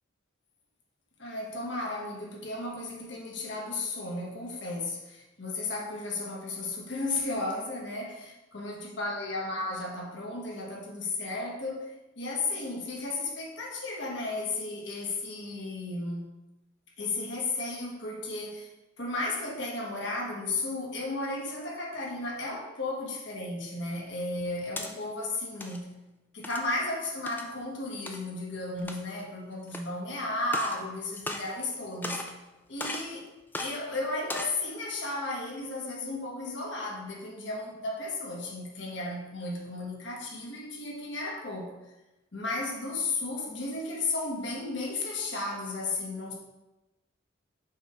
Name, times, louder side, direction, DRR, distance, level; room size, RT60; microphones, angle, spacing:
voice 1, 1.2-11.9 12.2-16.2 17.0-18.7 19.0-26.0 26.3-32.2 32.7-33.2 33.6-41.7 42.3-46.3, left 2 dB, 65° left, -2 dB, 1.3 m, -34 dB
sound 1, 24.4-24.9 25.4-25.8 26.4-26.7 27.3-27.5 28.1-28.2 28.8-29.2 29.7-29.8 30.4-30.8 31.1-31.7 32.0-32.4 32.8-33.1 33.5-33.7 34.2-34.6, left 2 dB, 10° left, 0.4 m, -36 dB
6.3 x 3.4 x 5.0 m, 1.0 s
head